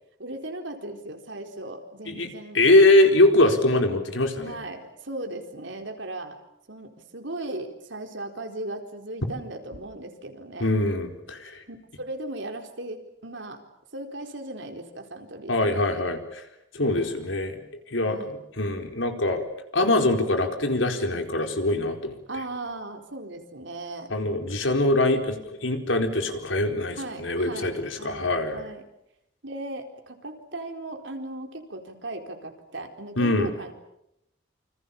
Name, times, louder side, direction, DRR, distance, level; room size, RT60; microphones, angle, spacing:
voice 1, 0.2-2.6 4.4-6.4 6.7-10.8 11.7-13.6 13.9-15.8 16.8-17.1 18.1-18.3 22.3-24.1 26.9-28.8 29.4-33.7, right 2 dB, 70° right, 4 dB, 4.4 m, -37 dB
voice 2, 2.5-4.6 10.6-11.5 15.5-16.4 16.7-17.6 17.9-19.4 19.7-22.1 24.1-28.6 33.2-33.5, left 2 dB, 80° left, 5 dB, 4.4 m, -23 dB
28.5 x 26.5 x 7.2 m, 0.82 s
head